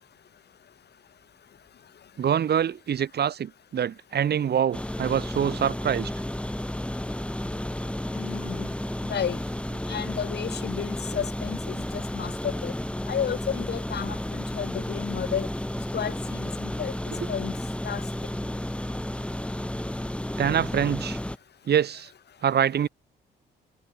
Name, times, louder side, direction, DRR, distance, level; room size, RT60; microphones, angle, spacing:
voice 1, 2.2-6.1 20.4-21.2 21.7-22.1 22.4-22.9, right 9 dB, 55° right, 2.3 m, -25 dB
sound 1, 4.7-21.4, left 1 dB, 5° left, 7.3 m, -32 dB
voice 2, 8.1-8.7 9.1-9.4 9.9-12.7 13.1-15.5 15.9-16.9 17.3-17.6 17.8-18.0, left 8 dB, 55° left, 7.6 m, -32 dB
cardioid pair, 90°, 20 cm